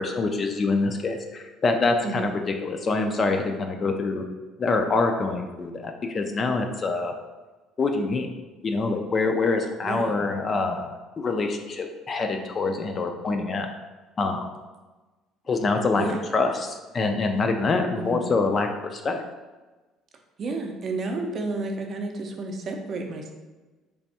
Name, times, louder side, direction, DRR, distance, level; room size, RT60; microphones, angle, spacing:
voice 1, 0.0-4.2 4.6-7.1 7.8-8.3 8.6-10.9 11.2-13.7 14.2-14.5 15.5-16.1 16.3-19.2, left 3 dB, 30° left, 4 dB, 0.4 m, -25 dB
voice 2, 9.8-10.1 16.0-16.2 18.0-18.2 20.4-23.3, right 3 dB, 40° right, 2 dB, 0.5 m, -31 dB
3.4 x 2.5 x 4.1 m, 1.2 s
cardioid pair, 125°, 0 cm